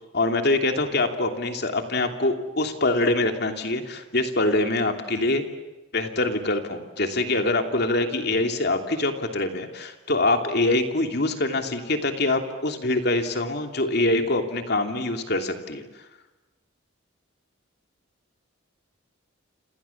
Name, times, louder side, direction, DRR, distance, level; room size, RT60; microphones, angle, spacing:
voice 1, 0.1-5.4 5.9-15.8, left 2 dB, 50° left, 5 dB, 2.9 m, -24 dB
29.5 x 28.0 x 7.2 m, 1.1 s
head